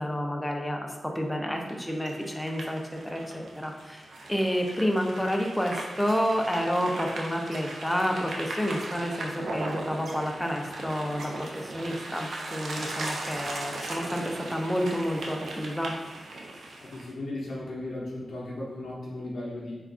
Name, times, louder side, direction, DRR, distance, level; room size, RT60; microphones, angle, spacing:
voice 1, 0.0-4.0 4.3-15.9, equal, 5° left, 1 dB, 0.4 m, -29 dB
sound 1, 1.7-17.1, right 2 dB, 80° right, 0.4 m, -38 dB
voice 2, 16.8-19.8, left 1 dB, 80° left, -5 dB, 0.5 m, -36 dB
2.3 x 2.3 x 3.5 m, 1.2 s
wide cardioid pair, 105°, 0 cm